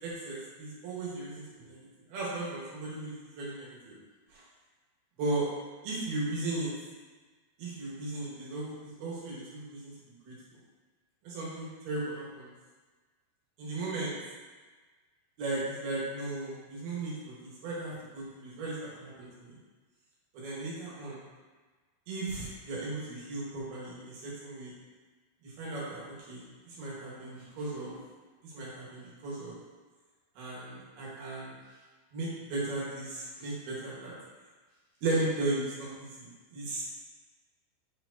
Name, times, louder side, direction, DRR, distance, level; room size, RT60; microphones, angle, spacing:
voice 1, 0.0-1.8 2.1-4.0 4.3-4.4 5.2-5.5 5.8-6.7 7.6-9.9 10.2-10.3 11.2-12.5 13.6-14.1 15.4-19.5 20.3-21.2 22.1-24.7 25.4-26.4 26.8-28.0 28.4-29.6 30.4-31.5 32.1-34.1 35.0-36.8, right 2 dB, 65° right, -7 dB, 3.1 m, -36 dB
8.3 x 4.3 x 2.7 m, 1.3 s
omnidirectional pair, 5.1 m